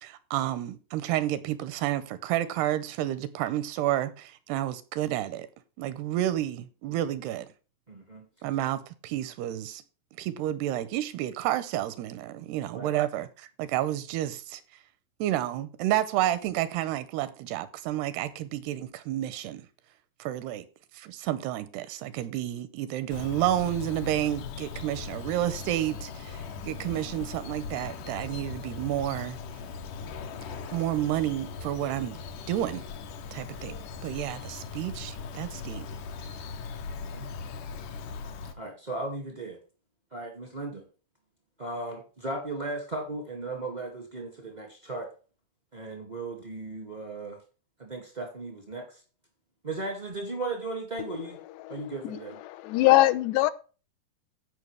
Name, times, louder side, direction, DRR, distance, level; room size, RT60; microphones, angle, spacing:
voice 1, 0.0-5.5 5.8-7.5 8.4-9.8 10.2-14.6 15.2-19.7 20.2-20.7 20.9-29.4 30.7-32.9 33.3-33.8 34.0-35.9, right 13 dB, 85° right, 2.6 m, -30 dB
voice 2, 7.9-8.2 12.7-12.9 37.1-37.3 38.6-39.6 40.1-40.8 41.6-45.1 45.7-47.4 47.8-49.0 49.6-51.4 51.7-52.4, right 2 dB, 30° right, 0.8 m, -36 dB
Bird vocalization bird call bird song, 23.1-38.5, left 5 dB, 70° left, 2.1 m, -39 dB
voice 3, 51.6-52.2 52.5-53.5, left 17 dB, 85° left, 2.9 m, -23 dB
15.5 x 5.6 x 3.4 m
omnidirectional pair, 4.9 m